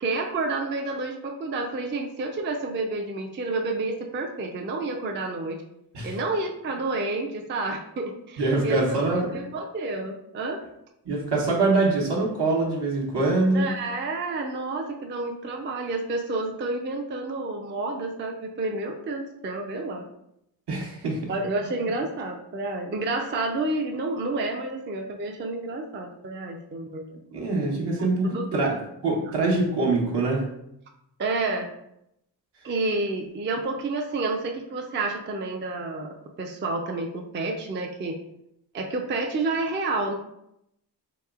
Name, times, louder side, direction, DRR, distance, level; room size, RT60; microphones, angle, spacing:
voice 1, 0.0-5.6 6.0-10.6 13.5-20.0 21.3-27.1 27.3-27.5 28.3-28.5 31.2-31.7 32.6-38.1 38.7-40.2, right 2 dB, 30° right, 2 dB, 0.4 m, -29 dB
voice 2, 8.4-9.4 11.0-13.7 20.7-21.3 27.3-28.8 29.0-30.4, right 2 dB, 70° right, -2 dB, 1.0 m, -24 dB
3.0 x 2.9 x 2.4 m, 0.80 s
cardioid pair, 55°, 43 cm